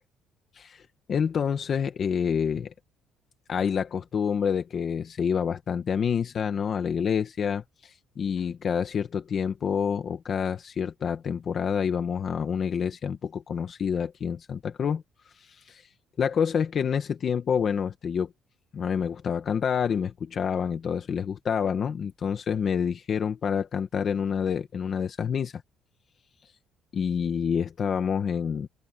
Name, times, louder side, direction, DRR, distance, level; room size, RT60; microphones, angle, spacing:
voice 1, 0.5-2.7 3.5-15.0 15.3-15.9 16.2-18.3 18.7-25.6 26.9-28.7, left 7 dB, 35° left, 1.2 m, -28 dB
cardioid pair, 175°, 0 cm